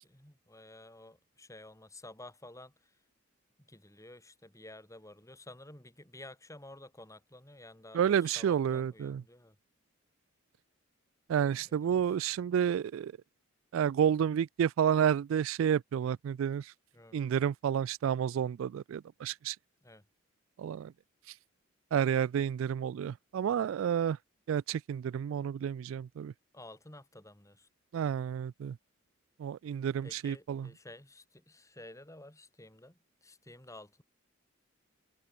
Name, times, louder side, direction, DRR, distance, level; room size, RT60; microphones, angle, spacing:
voice 1, 0.0-3.0 3.6-9.6 11.6-12.2 16.9-17.2 19.8-20.1 26.5-27.7 30.0-34.0, left 1 dB, 15° left, 6.9 m, -52 dB
voice 2, 7.9-9.2 11.3-13.1 13.7-16.7 17.1-19.6 20.6-20.9 21.9-24.2 24.5-26.3 27.9-28.8 29.4-30.7, right 8 dB, 75° right, 0.3 m, -30 dB
head